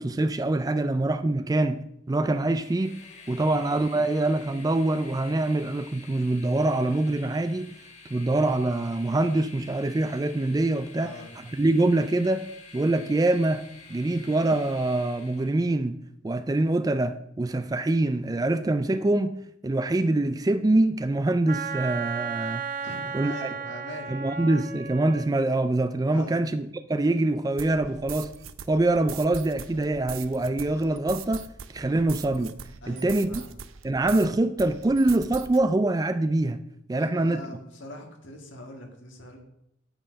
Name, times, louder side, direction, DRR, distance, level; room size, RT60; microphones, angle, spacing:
voice 1, 0.0-3.0 3.3-7.8 8.1-12.5 12.7-13.6 13.9-16.0 16.2-19.4 19.6-22.6 23.1-23.5 24.1-28.3 28.7-31.5 31.7-32.6 32.9-33.4 33.8-36.6 36.9-37.5, right 2 dB, 15° right, 0.3 m, -24 dB
Train, 2.2-15.7, left 4 dB, 35° left, 1.5 m, -49 dB
voice 2, 10.9-11.3 22.8-24.1 26.1-26.4 32.8-33.6 36.9-39.4, left 1 dB, 60° left, 2.1 m, -42 dB
Wind instrument woodwind instrument, 21.5-25.3, right 5 dB, 40° right, 0.7 m, -34 dB
sound 1, 27.6-34.3 34.6-35.6, right 7 dB, 70° right, 0.6 m, -41 dB
8.9 x 8.9 x 5.2 m
head